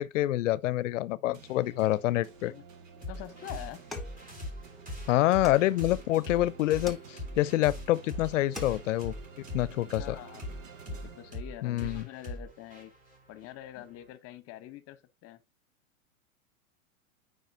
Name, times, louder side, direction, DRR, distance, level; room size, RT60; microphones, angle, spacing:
voice 1, 0.0-2.5 5.1-9.1 9.5-10.2 11.6-12.1, left 15 dB, 65° left, 0.7 m, -27 dB
sound 1, 1.3-11.9, right 5 dB, 70° right, 1.9 m, -51 dB
sound 2, 3.0-14.1, left 1 dB, 20° right, 5.0 m, -42 dB
voice 2, 3.1-3.8 10.0-10.5 10.9-12.9 13.3-15.4, left 14 dB, 35° left, 1.1 m, -45 dB
sound 3, 3.9-4.9 5.4-6.2 6.9-7.6 8.0-8.1 8.4-9.1, left 2 dB, ahead, 1.1 m, -46 dB
9.0 x 5.0 x 2.6 m
hypercardioid pair, 120°, 41 cm